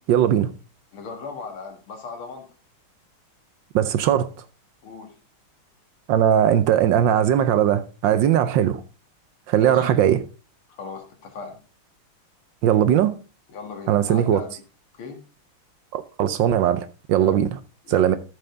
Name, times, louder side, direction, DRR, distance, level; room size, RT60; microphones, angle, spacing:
voice 1, 0.1-0.5 3.7-4.3 6.1-8.8 9.5-10.2 12.6-13.1 13.9-14.4 15.9-17.5 17.9-18.2, right 10 dB, 70° right, 1.2 m, -19 dB
voice 2, 0.9-2.5 4.8-5.1 9.5-9.9 10.8-11.6 13.5-14.6 14.9-15.2 17.3-17.4 17.8-18.2, left 4 dB, 90° left, 2.6 m, -38 dB
12.5 x 5.6 x 3.8 m
omnidirectional pair, 2.3 m